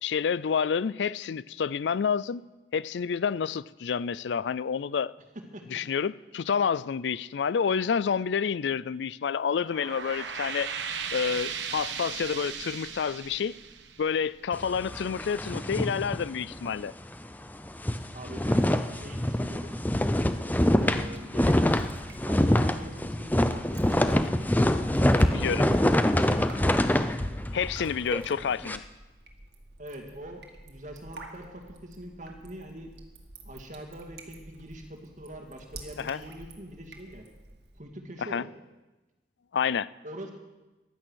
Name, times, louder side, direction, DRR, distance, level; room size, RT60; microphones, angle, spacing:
voice 1, 0.0-2.4 2.7-5.1 5.7-10.7 11.1-13.5 14.0-16.9 25.3-25.6 27.5-28.8 36.0-36.2 38.3-38.4 39.5-39.9, left 6 dB, 80° left, 0.4 m, -29 dB
sound 1, 9.5-14.8, right 6 dB, 85° right, 1.3 m, -36 dB
sound 2, 14.5-16.8 17.1-17.3 17.6-28.8, left 1 dB, 10° left, 0.5 m, -25 dB
voice 2, 18.1-19.8 20.6-21.7 22.2-24.5 25.0-27.2 29.8-32.9 33.5-37.2 37.8-38.5 40.0-40.3, right 1 dB, 45° right, 2.2 m, -43 dB
Drip, 20.8-37.8, right 2 dB, 65° right, 2.0 m, -49 dB
14.5 x 11.5 x 6.3 m
head